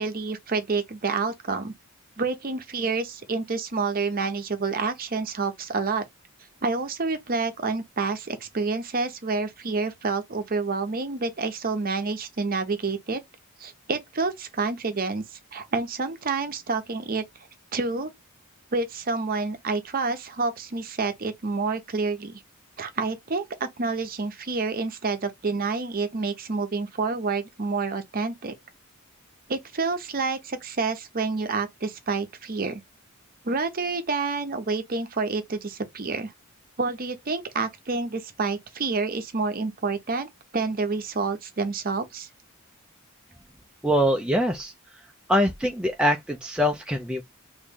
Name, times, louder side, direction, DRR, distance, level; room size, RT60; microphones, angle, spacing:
voice 1, 0.0-1.7 2.2-6.1 6.6-13.2 13.6-17.2 17.7-18.1 18.7-22.4 22.8-28.5 29.5-32.8 33.4-36.3 36.8-42.3, right 4 dB, 40° right, 0.7 m, -28 dB
voice 2, 43.8-44.7 45.3-47.2, equal, 5° right, 0.3 m, -23 dB
3.1 x 2.6 x 3.5 m
head